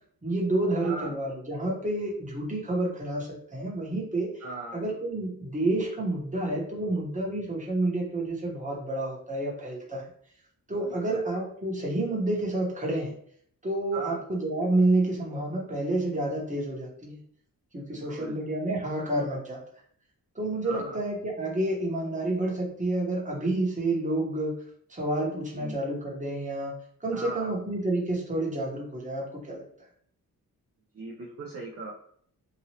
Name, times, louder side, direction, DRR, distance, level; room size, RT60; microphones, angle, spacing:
voice 1, 0.2-4.3 4.7-10.0 10.7-13.1 13.6-17.2 17.7-19.6 20.3-24.5 24.9-26.7 27.0-29.6, right 2 dB, 20° right, -3 dB, 1.1 m, -29 dB
voice 2, 0.8-1.1 4.4-4.8 10.8-11.2 13.9-14.2 17.9-18.4 20.6-21.0 25.5-25.8 27.1-27.5 30.9-31.9, right 3 dB, 40° right, -3 dB, 0.6 m, -39 dB
3.0 x 2.6 x 2.8 m, 0.63 s
cardioid pair, 75°, 37 cm